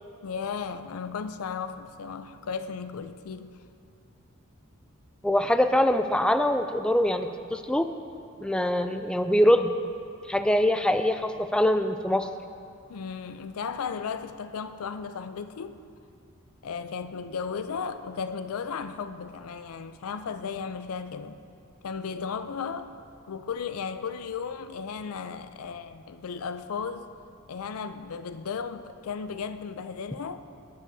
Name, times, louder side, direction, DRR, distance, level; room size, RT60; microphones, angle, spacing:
voice 1, 0.2-3.5 8.9-9.0 12.9-15.8 16.6-21.4 21.8-22.9 23.3-27.1 27.5-30.4, left 6 dB, 85° left, 10 dB, 0.4 m, -35 dB
voice 2, 5.2-7.9 8.4-9.7 10.3-12.3, left 1 dB, 5° left, 8 dB, 0.3 m, -23 dB
17.5 x 9.8 x 2.7 m, 2.5 s
head